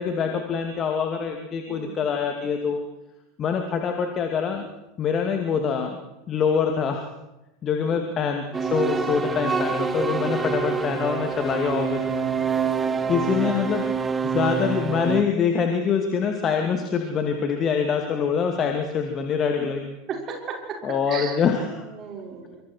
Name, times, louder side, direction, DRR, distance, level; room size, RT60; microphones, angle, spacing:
voice 1, 0.0-2.8 3.4-4.6 5.0-6.0 6.3-7.1 7.6-12.3 13.1-13.9 14.2-20.0 20.8-21.8, left 6 dB, 35° left, 4 dB, 2.6 m, -25 dB
sound 1, 8.5-15.2, right 5 dB, 20° right, 1.8 m, -26 dB
voice 2, 12.9-13.9 19.6-19.7 20.1-20.8 21.1-22.6, right 5 dB, 35° right, 1 dB, 5.7 m, -37 dB
26.5 x 26.0 x 4.7 m, 0.98 s
figure-of-eight pair, 80°, 0 cm